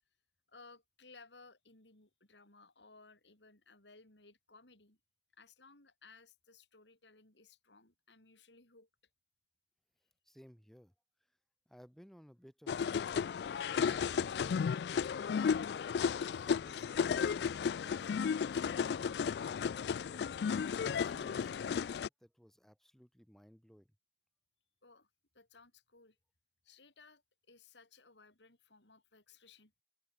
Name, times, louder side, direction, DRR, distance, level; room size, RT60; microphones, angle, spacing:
voice 1, 0.5-5.0 5.3-8.9 24.8-26.2 26.6-29.7, left 3 dB, 80° left, 4.6 m, -60 dB
voice 2, 10.2-10.9 11.2-11.4 11.7-14.6 15.2-15.6 16.3-17.0 17.8-20.3 20.9-24.0, equal, ahead, 4.5 m, -60 dB
sound 1, 12.7-22.1, left 6 dB, 65° left, 0.3 m, -34 dB
open air
head